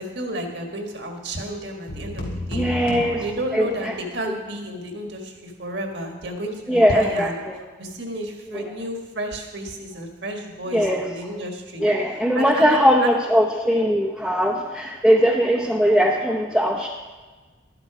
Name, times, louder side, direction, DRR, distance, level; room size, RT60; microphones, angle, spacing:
voice 1, 0.0-2.6 3.2-7.4 7.8-11.8 12.4-13.1, right 1 dB, 60° right, 3 dB, 1.8 m, -31 dB
sound 1, 1.9-4.1, left 1 dB, 85° left, 3.0 m, -32 dB
voice 2, 2.5-3.2 3.5-3.9 6.7-7.6 8.5-8.6 10.7-11.0 11.8-16.9, equal, ahead, -2 dB, 0.8 m, -20 dB
12.0 x 11.5 x 5.0 m, 1.3 s
head